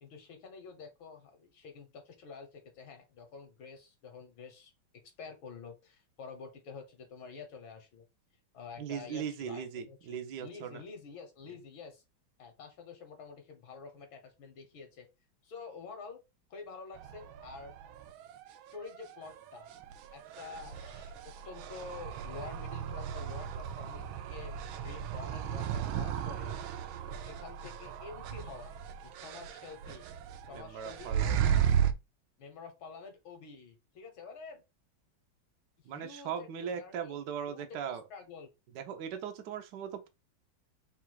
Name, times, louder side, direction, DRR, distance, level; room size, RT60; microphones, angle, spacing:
voice 1, 0.0-4.7 5.0-8.1 8.5-12.0 12.4-15.1 15.4-16.2 16.5-17.7 18.7-19.7 20.1-21.1 21.5-24.6 24.8-26.6 27.2-28.7 29.2-30.1 30.5-31.8 32.4-34.6 35.9-37.2 37.5-38.5, left 5 dB, 80° left, 2.0 m, -48 dB
voice 2, 8.8-10.8 30.5-31.4 35.9-38.0 38.7-40.1, right 8 dB, 65° right, 1.3 m, -39 dB
sound 1, 16.9-31.9, right 9 dB, 85° right, 1.4 m, -35 dB
4.2 x 2.4 x 4.5 m
omnidirectional pair, 2.2 m